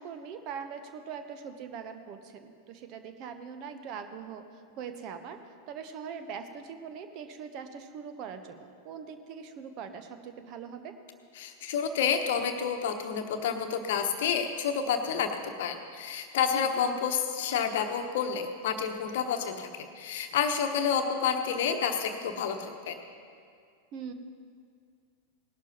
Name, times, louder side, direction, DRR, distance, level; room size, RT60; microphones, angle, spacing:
voice 1, 0.0-4.5 4.8-5.4 5.7-10.9 16.5-16.8 23.9-24.1, right 6 dB, 40° right, 8 dB, 1.0 m, -42 dB
voice 2, 11.4-23.0, left 7 dB, 55° left, 6 dB, 1.0 m, -29 dB
19.0 x 11.5 x 3.0 m, 2.2 s
figure-of-eight pair, 90°, 0 cm